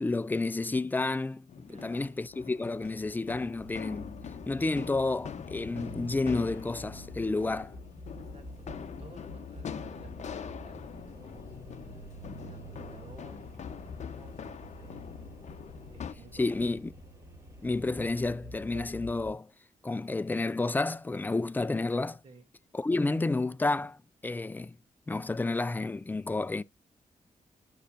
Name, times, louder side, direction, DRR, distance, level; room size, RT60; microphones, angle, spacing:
voice 1, 0.0-4.2 4.5-7.7 16.4-16.9 17.6-19.5 19.8-22.2 22.7-24.0 24.2-24.8 25.1-26.6, left 3 dB, 15° left, 0.4 m, -30 dB
sound 1, 1.5-16.1, left 7 dB, 55° left, 0.7 m, -43 dB
voice 2, 1.7-2.1 7.3-7.7 8.2-15.3 15.9-16.7 22.2-22.5, right 3 dB, 45° right, 2.3 m, -56 dB
sound 2, 3.6-19.3, equal, 20° right, 6.0 m, -47 dB
11.5 x 5.6 x 2.5 m
wide cardioid pair, 135°, 14 cm